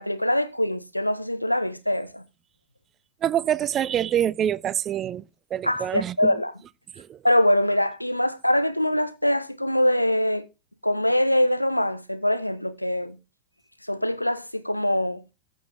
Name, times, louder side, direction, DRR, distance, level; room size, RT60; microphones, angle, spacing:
voice 1, 0.0-2.2 5.6-6.5 7.2-10.4 10.8-13.2 13.9-15.2, left 1 dB, 90° left, 0.9 m, -23 dB
voice 2, 3.2-5.2 5.5-6.3 7.0-7.2, right 10 dB, 30° right, 0.5 m, -25 dB
14.5 x 6.3 x 3.6 m
figure-of-eight pair, 90°, 0 cm